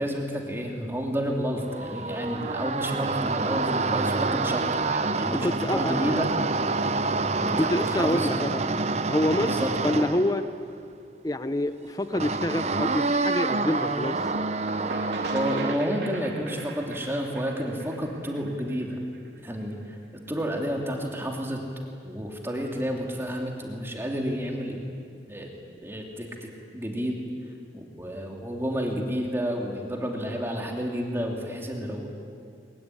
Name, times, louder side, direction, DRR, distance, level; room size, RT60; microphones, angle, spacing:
voice 1, 0.0-4.6 4.9-6.3 7.4-8.5 9.4-9.7 15.3-19.0 19.4-19.8 20.3-21.6 22.0-24.8 25.3-25.5 25.8-27.2 27.7-32.1, equal, 15° right, 0 dB, 2.8 m, -30 dB
sound 1, 1.6-10.5 12.1-15.7, right 3 dB, 40° right, 0.8 m, -27 dB
voice 2, 5.4-6.2 7.6-8.6 9.1-10.4 11.2-14.2, left 1 dB, 20° left, 10 dB, 0.9 m, -27 dB
sound 2, 14.0-19.6, right 2 dB, 75° right, 3.2 m, -39 dB
22.5 x 22.0 x 9.9 m, 2.3 s
head